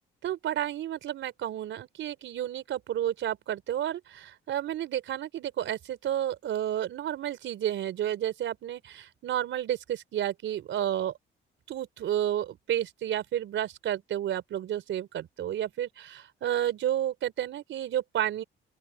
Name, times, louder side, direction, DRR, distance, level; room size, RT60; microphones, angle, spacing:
voice 1, 0.2-11.1 11.7-18.4, right 11 dB, 75° right, 4.3 m, -31 dB
open air
cardioid pair, 90°, 20 cm